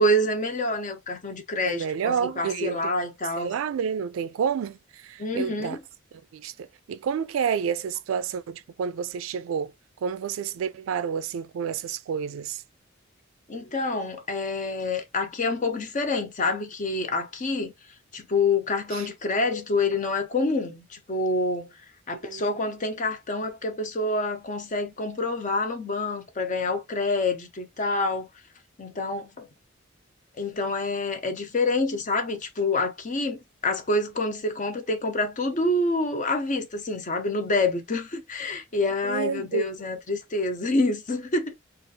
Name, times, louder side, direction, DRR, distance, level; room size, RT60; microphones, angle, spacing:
voice 1, 0.0-3.6 5.2-5.8 13.5-17.7 18.1-21.7 22.1-28.3 28.8-29.5 30.4-41.5, left 2 dB, 40° left, 0.6 m, -27 dB
voice 2, 1.7-2.9 3.4-5.8 6.3-9.7 10.0-12.6 18.9-19.1 22.2-22.4 39.0-39.7, right 7 dB, 90° right, 0.3 m, -29 dB
2.7 x 2.4 x 2.7 m
head